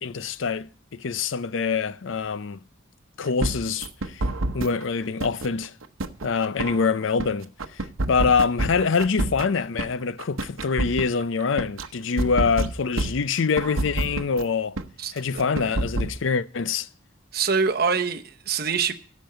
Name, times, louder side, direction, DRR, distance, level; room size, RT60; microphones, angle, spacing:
voice 1, 0.0-2.6 3.2-4.3 4.5-5.7 6.2-14.8 15.1-16.9, left 5 dB, 70° left, 0.5 m, -25 dB
sound 1, 3.4-4.8 5.2-7.3 7.6-9.9 10.2-11.9 12.2-14.4 14.8-14.9 15.2-16.2, right 2 dB, 85° right, 0.9 m, -27 dB
voice 2, 17.3-18.9, right 5 dB, 50° right, 0.9 m, -24 dB
13.0 x 5.3 x 8.9 m
head